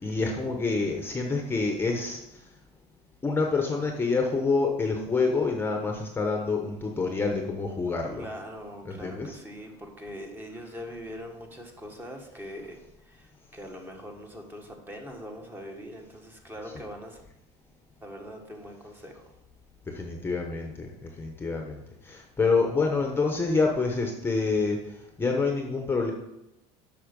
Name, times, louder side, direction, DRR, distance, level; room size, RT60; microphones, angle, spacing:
voice 1, 0.0-2.4 3.2-8.2 8.8-9.4 19.9-26.1, left 4 dB, 15° left, 2 dB, 1.0 m, -27 dB
voice 2, 8.2-17.2 18.0-19.2, equal, 15° right, 2 dB, 1.6 m, -42 dB
8.5 x 5.8 x 5.3 m, 0.91 s
cardioid pair, 125°, 14 cm